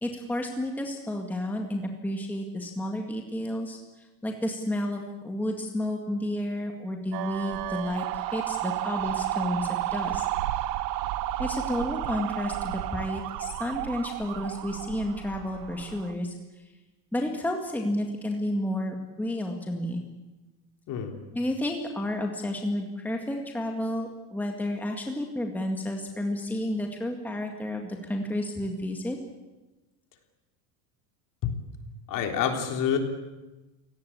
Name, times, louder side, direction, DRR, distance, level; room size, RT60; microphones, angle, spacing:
voice 1, 0.0-10.3 11.4-16.7 17.1-20.0 21.3-29.2, left 1 dB, 5° left, 2 dB, 1.9 m, -31 dB
sound 1, 7.1-16.1, right 14 dB, 90° right, 1.9 m, -32 dB
voice 2, 20.9-21.2 31.4-31.5 32.1-33.0, left 8 dB, 40° left, 4 dB, 3.6 m, -27 dB
30.0 x 18.0 x 8.5 m, 1.1 s
cardioid pair, 155°, 48 cm